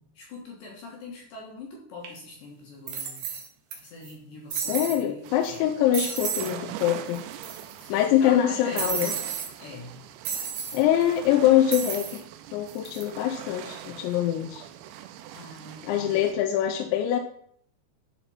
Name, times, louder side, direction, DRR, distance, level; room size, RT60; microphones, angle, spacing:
voice 1, 0.0-3.2 3.8-5.7 7.8-9.2 9.6-10.0 15.3-16.2, left 2 dB, 65° left, -1 dB, 2.5 m, -43 dB
sound 1, 2.0-2.1 2.9-3.7 4.0-4.1 4.5-5.0 5.4-5.6 5.9-6.5 6.8-6.9 7.1-7.9 8.8-9.5 10.2-10.8 11.7-12.2 12.7-13.0, right 7 dB, 65° right, 1.9 m, -32 dB
voice 2, 4.5-7.2 7.9-9.2 10.7-12.2 12.5-14.7 15.9-17.2, left 11 dB, 90° left, 6 dB, 2.9 m, -24 dB
sound 2, 5.2-16.3, right 11 dB, 85° right, 2.6 m, -42 dB
11.0 x 4.4 x 4.2 m, 0.64 s
omnidirectional pair, 5.1 m